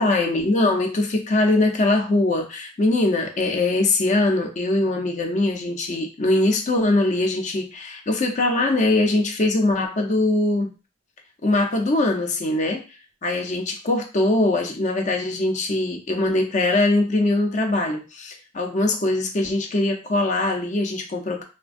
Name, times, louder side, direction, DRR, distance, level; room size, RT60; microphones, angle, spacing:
voice 1, 0.0-10.7 11.4-12.8 13.2-21.4, left 2 dB, 40° left, 3 dB, 0.5 m, -22 dB
3.3 x 2.2 x 2.4 m, 0.31 s
head